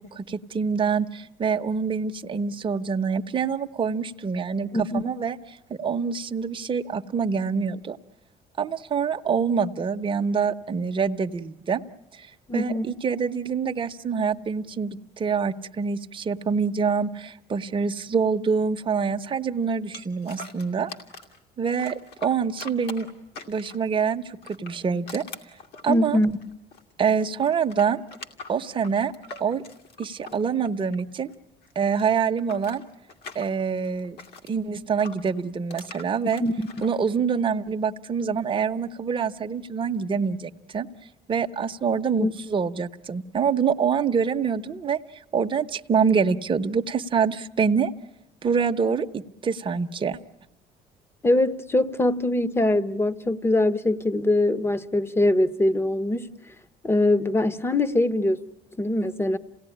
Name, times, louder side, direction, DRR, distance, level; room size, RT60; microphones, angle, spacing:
voice 1, 0.1-5.4 5.7-8.0 8.6-11.8 12.1-12.3 12.5-20.9 21.6-23.1 23.5-25.2 25.8-26.2 27.0-28.0 28.5-29.1 29.4-29.6 30.0-31.3 31.8-32.8 33.3-34.2 34.5-36.4 36.8-40.9 41.3-45.0 45.3-47.9 48.4-50.2, right 6 dB, 30° right, 0.9 m, -25 dB
voice 2, 4.7-5.0 12.5-12.9 25.9-26.4 36.4-36.7 42.2-42.3 51.2-56.3 56.8-58.4 58.8-59.4, left 1 dB, 15° left, 0.9 m, -22 dB
sound 1, 19.9-21.4 21.8-23.9 24.4-26.9 27.2-31.3 31.6-34.5 35.0-36.9, left 3 dB, 70° left, 2.5 m, -43 dB
28.0 x 17.5 x 10.0 m
cardioid pair, 110°, 17 cm